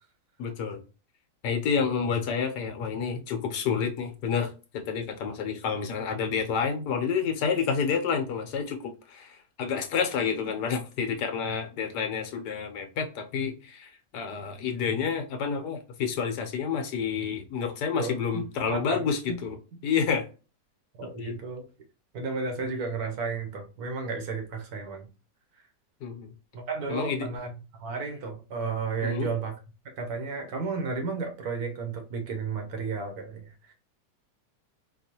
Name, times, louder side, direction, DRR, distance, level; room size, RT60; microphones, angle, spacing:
voice 1, 0.4-0.8 1.4-19.6 19.8-20.3 21.0-21.4 26.0-26.3 26.9-27.3 29.0-29.3, left 6 dB, 75° left, 1.3 m, -29 dB
voice 2, 17.9-19.4 21.0-21.7 22.1-25.1 26.5-29.6 29.8-33.7, right 4 dB, 65° right, 1.2 m, -33 dB
4.4 x 2.4 x 2.8 m
omnidirectional pair, 1.8 m